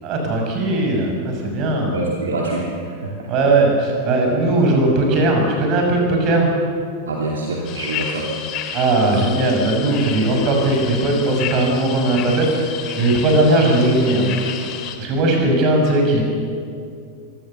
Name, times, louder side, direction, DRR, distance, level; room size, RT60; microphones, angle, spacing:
voice 1, 0.0-1.9 3.3-6.5 8.7-14.3 15.0-16.2, right 2 dB, 40° right, 2 dB, 5.8 m, -18 dB
voice 2, 1.9-3.3 4.2-4.3 7.1-8.3, right 2 dB, 65° right, -1 dB, 2.6 m, -25 dB
sound 1, 7.6-15.0, left 8 dB, 40° left, 2.2 m, -31 dB
24.5 x 17.0 x 6.9 m, 2.3 s
figure-of-eight pair, 90°, 0 cm